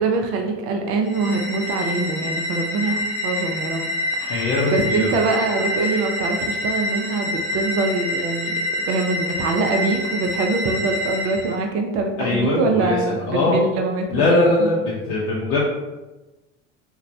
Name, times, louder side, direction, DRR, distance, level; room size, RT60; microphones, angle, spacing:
voice 1, 0.0-3.9 4.2-8.5 8.9-14.7, right 3 dB, 40° right, 4 dB, 0.4 m, -24 dB
sound 1, 1.0-11.6, left 1 dB, 80° left, 0.9 m, -27 dB
voice 2, 4.3-5.2 12.2-13.6 14.1-15.6, left 2 dB, 55° left, -5 dB, 0.7 m, -21 dB
3.0 x 2.1 x 2.6 m, 1.1 s
figure-of-eight pair, 75°, 38 cm